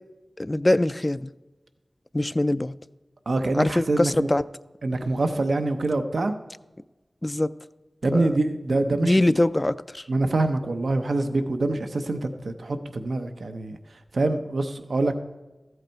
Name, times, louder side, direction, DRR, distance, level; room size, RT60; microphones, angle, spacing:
voice 1, 0.4-1.3 2.1-2.7 3.5-4.4 7.2-7.5 8.1-8.4 9.0-10.0, left 1 dB, 30° left, 0.3 m, -23 dB
voice 2, 3.3-4.3 4.8-6.3 8.0-9.4 10.1-13.8 14.1-15.2, right 2 dB, 80° right, 0.7 m, -25 dB
14.0 x 8.0 x 4.5 m
wide cardioid pair, 55°, 0 cm